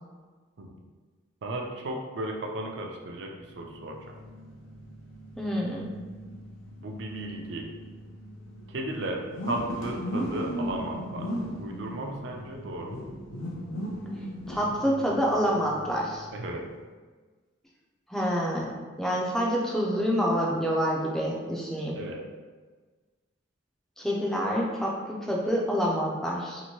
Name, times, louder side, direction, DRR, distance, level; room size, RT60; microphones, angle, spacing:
voice 1, 1.4-4.0 6.8-7.7 8.7-9.2 9.5-11.3 11.6-13.0 16.3-16.7 22.0-22.2, right 1 dB, 60° right, 1 dB, 0.4 m, -35 dB
sound 1, 3.5-16.8, equal, 75° left, 0.5 m, -38 dB
voice 2, 5.4-5.9 14.5-16.3 18.1-22.0 24.0-26.6, equal, ahead, -3 dB, 0.4 m, -27 dB
2.8 x 2.5 x 2.9 m, 1.4 s
head